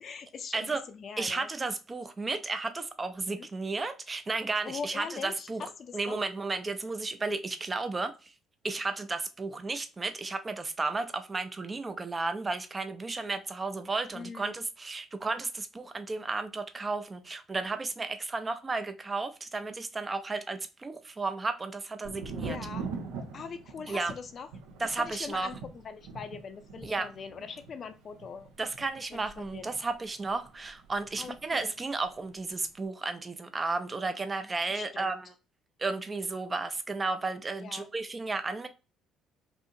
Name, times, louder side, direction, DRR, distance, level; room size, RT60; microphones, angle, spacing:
voice 1, 0.0-1.5 3.3-3.5 4.7-6.2 14.1-14.6 22.4-22.9 23.3-24.5 24.8-28.5 29.1-29.7 31.2-31.7 34.7-35.1 37.6-37.9, left 6 dB, 50° left, 0.4 m, -42 dB
voice 2, 1.2-8.3 8.6-22.6 23.9-24.1 24.8-25.5 26.8-27.1 28.6-35.3 35.8-38.7, right 3 dB, 30° right, 0.5 m, -33 dB
Thunder, 22.0-31.7 31.9-32.7, right 4 dB, 80° right, 0.5 m, -43 dB
2.6 x 2.6 x 2.4 m
hypercardioid pair, 55°, 0 cm